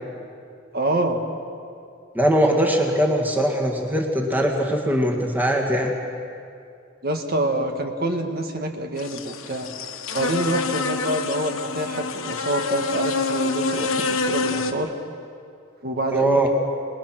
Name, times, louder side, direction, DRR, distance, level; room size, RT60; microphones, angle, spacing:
voice 1, 0.7-1.2 7.0-9.7 10.1-14.9 15.8-16.5, right 1 dB, 50° right, 4 dB, 1.8 m, -26 dB
voice 2, 2.1-5.9 16.1-16.5, right 1 dB, 10° right, 0 dB, 2.2 m, -21 dB
sound 1, 9.0-14.7, left 3 dB, 90° left, 1.4 m, -26 dB
28.0 x 20.5 x 6.1 m, 2.5 s
head